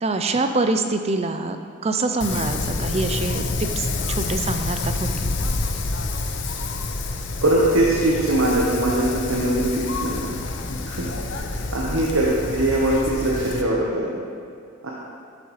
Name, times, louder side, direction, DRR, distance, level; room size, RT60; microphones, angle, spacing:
voice 1, 0.0-1.6 1.8-5.3, right 3 dB, 30° right, 7 dB, 0.4 m, -25 dB
Wind, 2.2-13.6, left 3 dB, 65° left, 0.7 m, -28 dB
voice 2, 7.4-10.3 10.9-11.1 11.7-14.1 14.8-14.9, right 1 dB, 90° right, -4 dB, 1.2 m, -21 dB
12.0 x 7.3 x 3.2 m, 2.4 s
head